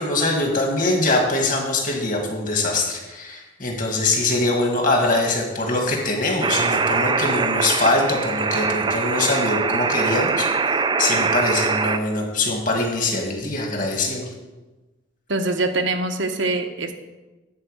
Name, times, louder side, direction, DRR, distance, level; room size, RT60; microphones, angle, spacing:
voice 1, 0.0-10.5 10.8-14.3, left 2 dB, 45° left, 1 dB, 1.9 m, -23 dB
sound 1, 6.4-12.0, right 4 dB, 25° right, 0.3 m, -23 dB
voice 2, 15.3-16.9, right 2 dB, 75° right, 5 dB, 1.0 m, -23 dB
10.5 x 4.7 x 8.0 m, 1.1 s
head